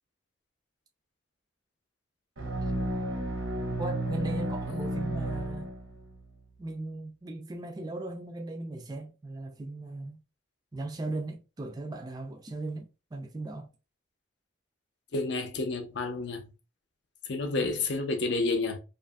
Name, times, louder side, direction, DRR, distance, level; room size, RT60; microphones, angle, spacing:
sound 1, 2.4-6.2, right 1 dB, 85° right, 0.7 m, -32 dB
voice 1, 3.8-5.7 6.6-10.2 10.7-13.7 17.4-17.8, right 2 dB, 20° right, 0.3 m, -38 dB
voice 2, 15.1-16.5 17.2-18.8, left 3 dB, 60° left, 0.5 m, -30 dB
2.6 x 2.5 x 2.2 m
head